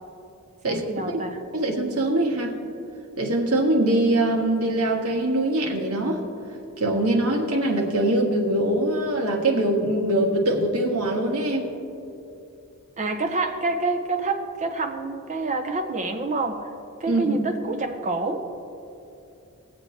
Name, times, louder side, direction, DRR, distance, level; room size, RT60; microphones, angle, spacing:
voice 1, 0.6-1.4 13.0-16.7 17.0-18.5, right 3 dB, 35° right, 5 dB, 0.6 m, -27 dB
voice 2, 1.5-2.5 3.2-6.2 6.8-11.7 17.1-17.4, right 1 dB, 85° right, 1 dB, 1.6 m, -23 dB
20.5 x 7.7 x 3.1 m, 2.7 s
head